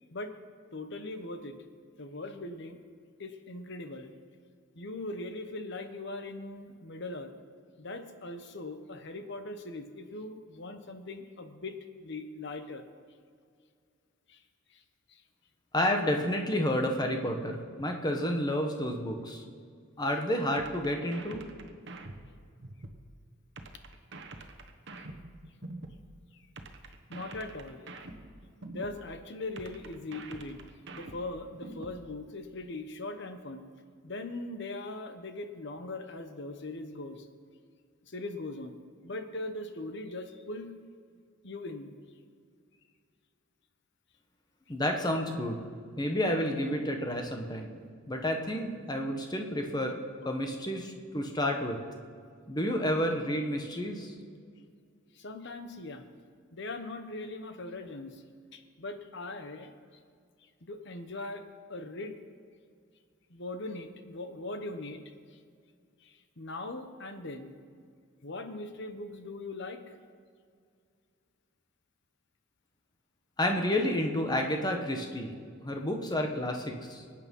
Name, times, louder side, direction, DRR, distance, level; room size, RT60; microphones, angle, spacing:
voice 1, 0.7-1.6 2.0-2.8 3.2-4.1 4.7-7.3 7.8-12.9 14.3-14.4 14.7-14.8 15.1-15.2 27.1-27.8 28.7-30.6 30.9-33.6 34.0-37.3 38.1-38.8 39.0-40.7 41.4-41.9 55.1-56.1 56.5-58.2 58.5-59.7 60.6-61.4 61.7-62.2 63.3-65.0 65.3-65.4 66.0-67.5 68.2-69.9, left 2 dB, 55° left, 8 dB, 1.1 m, -40 dB
voice 2, 15.7-19.4 20.0-21.4 44.7-45.6 46.0-47.8 48.1-50.0 50.2-51.8 52.5-54.1 73.4-75.4 75.6-77.0, left 1 dB, 20° left, 3 dB, 1.4 m, -30 dB
sound 1, 20.6-23.0 23.6-26.0 26.6-29.0 29.6-32.0, right 2 dB, 55° right, 1.2 m, -45 dB
24.0 x 9.0 x 5.5 m, 2.1 s
head